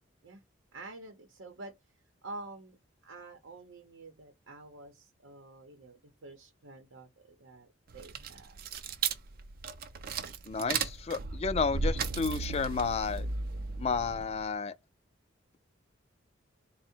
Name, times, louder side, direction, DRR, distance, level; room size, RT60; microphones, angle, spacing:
voice 1, 0.7-1.8 2.2-2.8 3.0-8.6, right 2 dB, 85° right, 0.7 m, -48 dB
sound 1, 7.9-14.5, right 4 dB, 50° right, 0.4 m, -35 dB
voice 2, 10.5-13.3 13.8-14.7, left 5 dB, 30° left, 0.3 m, -31 dB
3.6 x 2.1 x 4.3 m
head